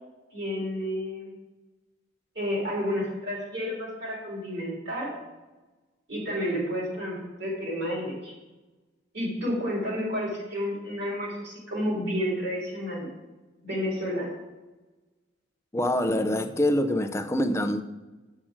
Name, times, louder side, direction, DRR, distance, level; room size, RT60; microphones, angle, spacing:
voice 1, 0.3-1.3 2.4-5.1 6.1-8.3 9.1-13.1 13.6-14.4, equal, 60° right, -4 dB, 3.5 m, -30 dB
voice 2, 15.7-17.8, left 1 dB, 15° left, 8 dB, 0.5 m, -25 dB
7.5 x 7.3 x 5.0 m, 1.2 s
head